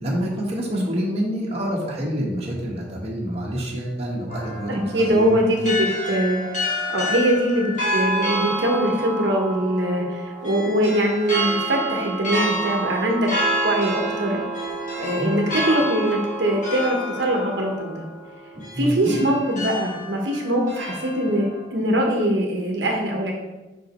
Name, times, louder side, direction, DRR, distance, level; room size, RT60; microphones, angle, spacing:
voice 1, 0.0-5.3 15.2-15.3 18.5-19.3, equal, 35° right, -3 dB, 1.3 m, -27 dB
sound 1, 4.3-21.6, right 1 dB, 40° left, 2.0 m, -28 dB
voice 2, 4.7-6.4 6.9-13.3 13.6-14.4 15.0-18.0 18.8-23.3, right 1 dB, 75° right, 1 dB, 1.0 m, -22 dB
5.4 x 5.1 x 4.2 m, 1.1 s
head